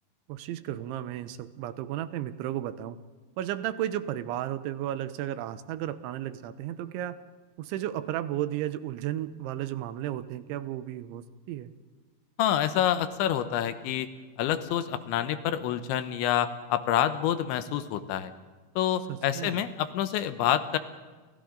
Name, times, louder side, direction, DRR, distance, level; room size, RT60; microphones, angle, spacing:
voice 1, 0.3-3.0 3.4-7.2 7.6-11.7 19.1-19.7, right 12 dB, 85° right, 12 dB, 3.3 m, -34 dB
voice 2, 12.4-14.1 14.4-18.3 18.8-20.8, left 10 dB, 80° left, 10 dB, 3.4 m, -27 dB
30.0 x 27.5 x 3.9 m, 1.4 s
omnidirectional pair, 5.3 m